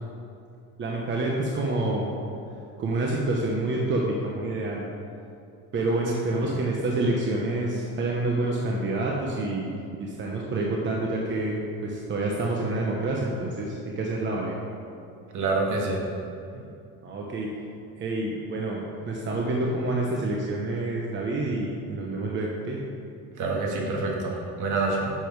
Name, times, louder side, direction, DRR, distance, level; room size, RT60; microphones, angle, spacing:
voice 1, 0.8-2.1 2.8-4.8 5.7-14.6 17.0-17.5 18.0-22.8 24.9-25.0, right 2 dB, 30° right, -2 dB, 1.0 m, -28 dB
voice 2, 15.3-16.0 23.4-25.1, right 3 dB, 55° right, -1 dB, 2.0 m, -27 dB
10.5 x 7.0 x 4.7 m, 2.5 s
cardioid pair, 160°, 36 cm